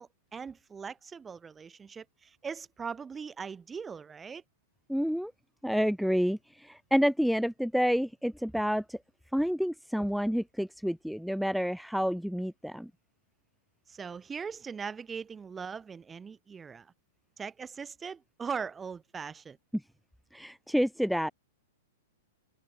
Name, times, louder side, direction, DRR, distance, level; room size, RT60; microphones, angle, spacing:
voice 1, 0.0-4.4 13.9-16.9 17.4-19.6, right 6 dB, 15° right, 3.1 m, -40 dB
voice 2, 4.9-5.3 5.6-9.0 9.3-12.9 19.7-19.8 20.3-21.3, equal, ahead, 0.5 m, -29 dB
open air
hypercardioid pair, 110°, 0 cm